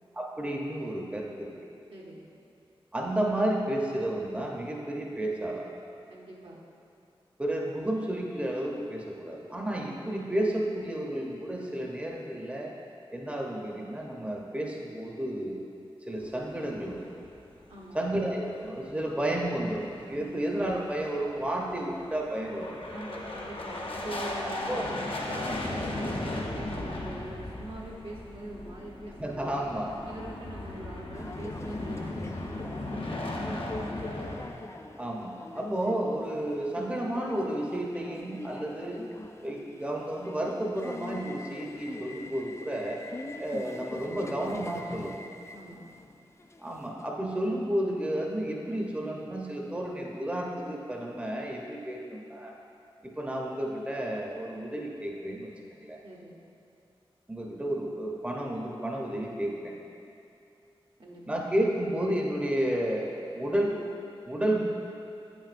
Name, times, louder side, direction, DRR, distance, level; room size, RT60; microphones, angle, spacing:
voice 1, 0.1-1.5 2.9-5.7 7.4-12.7 13.1-15.6 16.0-17.1 17.9-22.7 24.4-24.9 29.2-29.9 35.0-39.0 39.4-43.0 43.4-45.2 46.6-52.6 53.2-55.5 55.8-56.0 57.3-59.7 61.3-63.8 64.3-64.6, right 1 dB, 15° right, -1 dB, 0.8 m, -31 dB
voice 2, 1.9-2.2 6.1-6.6 17.7-18.0 20.1-20.3 22.9-25.2 25.6-29.6 30.1-34.3 45.5-45.9 56.0-56.4 61.0-61.4, right 1 dB, 65° right, -3 dB, 1.0 m, -44 dB
sound 1, 16.2-17.8 18.1-18.2 18.6-18.7 19.1-34.5, left 1 dB, 60° left, 0.8 m, -37 dB
Subway metro underground, 31.1-47.1, left 2 dB, 30° left, 0.4 m, -43 dB
7.9 x 6.1 x 2.5 m, 2.7 s
cardioid pair, 45°, 10 cm